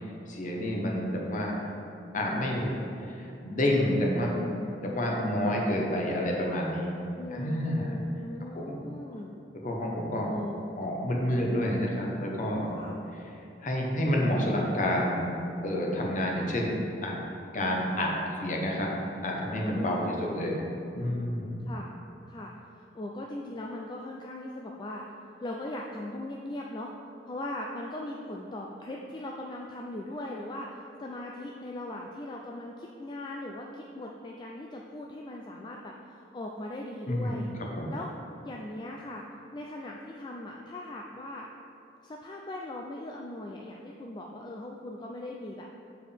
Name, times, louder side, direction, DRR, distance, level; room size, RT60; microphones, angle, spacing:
voice 1, 0.3-1.6 2.1-2.8 3.1-6.9 7.3-8.0 8.5-8.8 9.6-10.3 10.8-12.8 13.6-15.3 15.6-17.2 17.5-18.9 19.2-20.6 20.9-21.7 37.1-37.4 37.8-37.9, left 1 dB, 45° left, -1 dB, 0.9 m, -29 dB
voice 2, 7.2-9.3 10.3-10.7 12.7-13.0 19.7-20.2 21.7-21.9 22.3-25.1 25.4-26.9 27.3-37.5 37.9-38.1 38.4-39.3 39.5-41.5 42.0-45.7, left 1 dB, 25° left, -1 dB, 0.3 m, -39 dB
7.2 x 4.5 x 3.4 m, 2.8 s
head